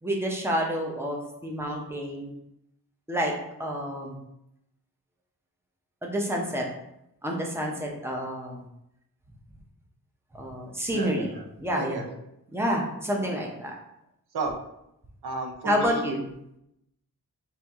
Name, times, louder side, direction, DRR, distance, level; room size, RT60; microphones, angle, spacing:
voice 1, 0.0-2.3 3.1-3.3 3.6-4.2 6.0-6.7 7.2-8.6 10.3-12.0 12.5-13.7 15.6-16.2, equal, 5° right, -1 dB, 0.6 m, -29 dB
voice 2, 10.9-11.3 11.8-12.0 14.3-14.5 15.2-16.0, right 3 dB, 90° right, 3 dB, 0.8 m, -32 dB
4.4 x 2.6 x 3.5 m, 0.82 s
wide cardioid pair, 175°, 37 cm